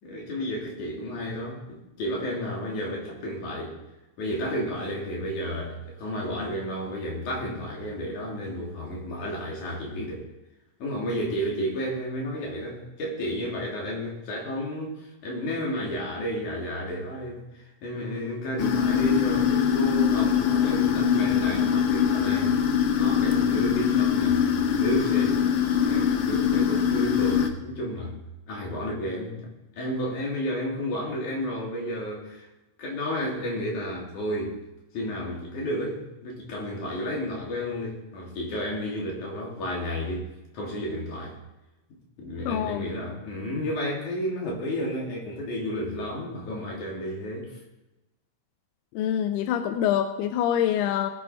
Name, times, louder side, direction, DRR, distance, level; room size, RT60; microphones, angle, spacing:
voice 1, 0.0-3.8 4.2-10.3 10.8-22.6 23.0-24.4 24.7-28.1 28.5-29.4 29.8-32.5 32.8-34.6 34.9-40.3 40.5-41.4 42.2-47.6, equal, 50° left, -2 dB, 4.2 m, -32 dB
sound 1, 18.6-27.5, left 8 dB, 65° left, 2.0 m, -23 dB
voice 2, 42.5-42.9 49.0-51.1, left 10 dB, 85° left, 8 dB, 2.6 m, -25 dB
19.5 x 7.5 x 5.1 m, 0.98 s
omnidirectional pair, 4.5 m